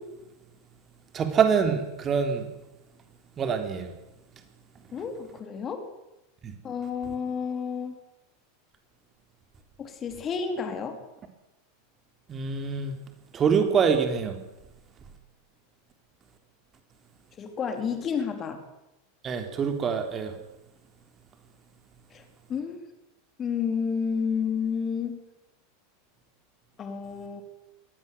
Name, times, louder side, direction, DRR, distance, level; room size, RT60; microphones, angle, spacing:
voice 1, 1.1-2.5 3.4-3.9 6.4-6.6 12.3-13.0 13.3-14.4 19.2-20.4, right 6 dB, 25° right, 6 dB, 3.6 m, -25 dB
voice 2, 4.9-5.9 6.6-8.0 9.8-11.0 17.4-18.6 22.1-22.2 22.5-22.8 23.4-25.2 26.8-27.4, left 6 dB, 30° left, 6 dB, 3.9 m, -30 dB
22.0 x 17.5 x 9.6 m, 0.96 s
figure-of-eight pair, 85°, 0 cm